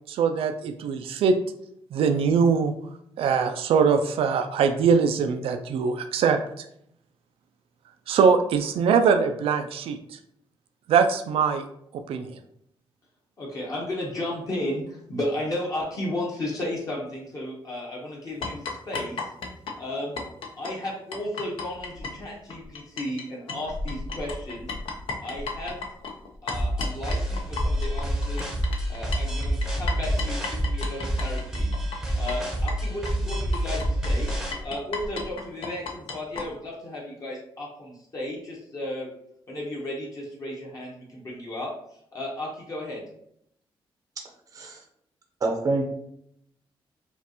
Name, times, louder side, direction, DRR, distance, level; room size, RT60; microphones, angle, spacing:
voice 1, 0.1-1.4 1.9-2.7 3.2-6.7 8.1-10.0 10.9-11.7 12.1-12.3, right 6 dB, 85° right, 8 dB, 0.4 m, -22 dB
voice 2, 13.4-19.3 19.8-20.2 20.6-24.7 25.2-25.9 26.4-31.7 32.2-34.3 34.6-39.1 39.5-41.7 42.1-43.0, left 1 dB, 40° left, -3 dB, 1.1 m, -34 dB
sound 1, 18.4-23.2 23.5-36.5, left 3 dB, 75° left, 0.7 m, -34 dB
sound 2, 26.5-34.5, right 1 dB, 5° right, 0.7 m, -28 dB
voice 3, 45.4-45.8, right 2 dB, 40° right, 1 dB, 0.6 m, -26 dB
5.3 x 2.4 x 2.9 m, 0.72 s
wide cardioid pair, 150°, 9 cm